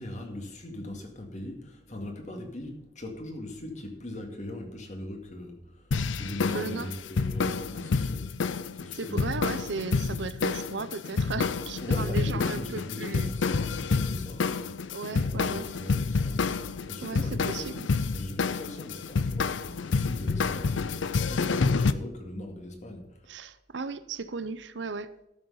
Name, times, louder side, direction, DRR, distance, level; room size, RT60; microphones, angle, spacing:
voice 1, 0.0-8.2 8.7-9.3 11.8-14.7 15.1-16.4 16.9-17.8 18.1-23.3, left 1 dB, 40° left, 3 dB, 2.1 m, -40 dB
sound 1, 5.9-21.9, left 4 dB, 85° left, 0.6 m, -29 dB
voice 2, 6.5-6.9 8.9-13.3 14.9-15.7 17.0-17.9 23.3-25.1, right 4 dB, 70° right, 13 dB, 0.7 m, -36 dB
12.5 x 6.5 x 5.6 m, 0.92 s
head